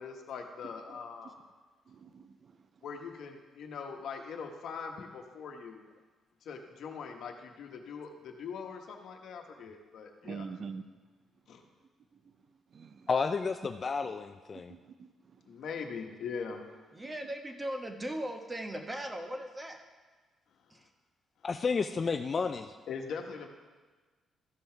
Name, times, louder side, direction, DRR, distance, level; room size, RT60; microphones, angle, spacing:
voice 1, 0.0-1.4 2.8-5.8 6.4-10.5 11.5-11.6 15.5-16.7 22.9-23.5, left 5 dB, 70° left, 3 dB, 1.2 m, -41 dB
voice 2, 1.9-2.6 10.2-10.8 12.7-13.1 14.5-15.4, right 5 dB, 50° right, 10 dB, 0.5 m, -45 dB
voice 3, 13.1-14.7 21.4-22.7, left 5 dB, 40° left, 7 dB, 0.4 m, -31 dB
voice 4, 16.9-19.8 20.7-20.9, right 1 dB, 20° right, 4 dB, 1.1 m, -38 dB
14.0 x 5.5 x 4.5 m, 1.4 s
cardioid pair, 90°, 0 cm